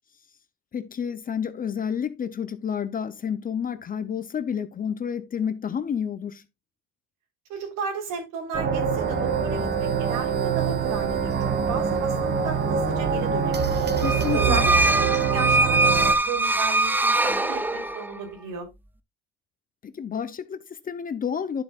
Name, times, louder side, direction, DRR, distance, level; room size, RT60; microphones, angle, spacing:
voice 1, 0.7-6.4 14.0-14.6 19.8-21.6, left 7 dB, 25° left, 0.7 m, -30 dB
voice 2, 7.5-13.9 14.3-18.7, right 6 dB, 80° right, 4.1 m, -34 dB
sound 1, 8.5-16.1, right 6 dB, 35° right, 1.5 m, -24 dB
sound 2, 14.0-18.2, right 2 dB, 5° right, 0.5 m, -22 dB
11.0 x 7.3 x 2.5 m
cardioid pair, 145°, 32 cm